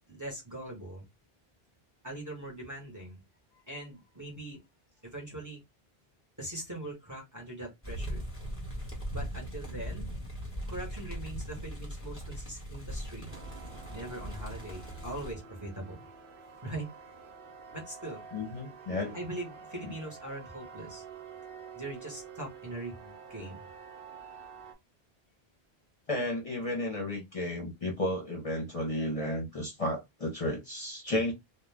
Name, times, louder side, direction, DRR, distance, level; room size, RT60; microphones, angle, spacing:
voice 1, 0.1-1.1 2.0-3.2 3.7-4.6 5.0-5.6 6.4-8.2 9.1-10.1 10.7-13.3 13.9-16.0 16.6-16.9 17.7-18.2 19.1-21.0 21.7-23.6, right 1 dB, 20° right, 0.9 m, -41 dB
sound 1, 7.8-15.3, equal, 15° left, 1.0 m, -39 dB
sound 2, 13.3-24.7, right 6 dB, 65° right, 0.8 m, -49 dB
voice 2, 18.3-19.2 26.1-31.3, left 1 dB, 40° left, 0.7 m, -33 dB
2.4 x 2.2 x 3.2 m
omnidirectional pair, 1.0 m